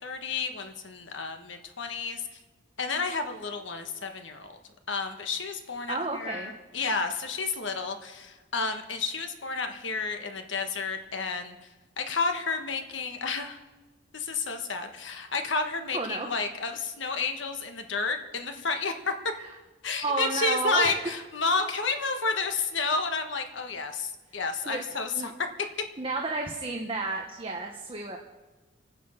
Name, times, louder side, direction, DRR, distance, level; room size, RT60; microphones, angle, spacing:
voice 1, 0.0-2.2 2.8-4.6 4.9-11.5 12.0-13.6 14.1-19.1 19.8-25.3, left 4 dB, 75° left, 6 dB, 1.4 m, -31 dB
voice 2, 5.9-6.5 15.9-16.3 20.0-21.0 24.7-24.8 25.1-25.3 26.0-28.2, right 3 dB, 30° right, 1 dB, 1.1 m, -31 dB
26.5 x 9.3 x 5.7 m, 1.2 s
head